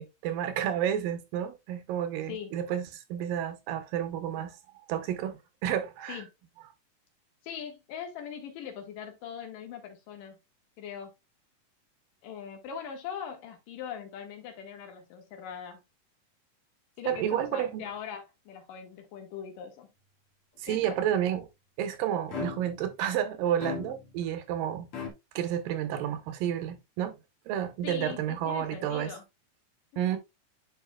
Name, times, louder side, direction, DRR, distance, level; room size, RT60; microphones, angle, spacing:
voice 1, 0.0-4.6 4.9-6.2 17.1-17.8 20.6-21.4 21.8-24.9 25.4-27.2 27.5-29.1 30.0-30.2, right 10 dB, 85° right, 2.6 m, -31 dB
voice 2, 7.4-10.4 10.8-11.1 12.2-15.8 17.0-19.9 20.7-21.0 27.8-29.2 29.9-30.2, left 8 dB, 75° left, 3.1 m, -41 dB
sound 1, 22.3-22.9 23.6-24.3 24.9-25.1, left 6 dB, 50° left, 2.2 m, -36 dB
10.5 x 4.9 x 2.2 m
omnidirectional pair, 3.9 m